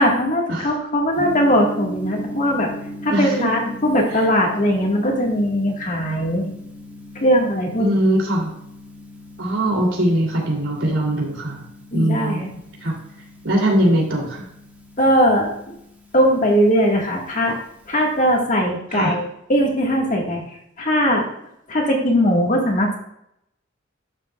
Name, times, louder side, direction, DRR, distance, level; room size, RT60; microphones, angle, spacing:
voice 1, 0.0-2.7 3.0-6.5 7.2-7.9 11.9-12.5 15.0-15.7 16.1-17.6 17.9-21.3 21.7-23.0, equal, 40° left, 0 dB, 1.7 m, -20 dB
Gong, 1.2-18.4, equal, 10° right, 1.1 m, -38 dB
voice 2, 3.1-3.5 7.8-8.5 9.4-11.6 11.9-12.4 12.8-12.9 13.4-14.4 18.9-19.1, right 1 dB, 75° right, -2 dB, 3.0 m, -20 dB
12.0 x 6.6 x 2.4 m, 0.78 s
head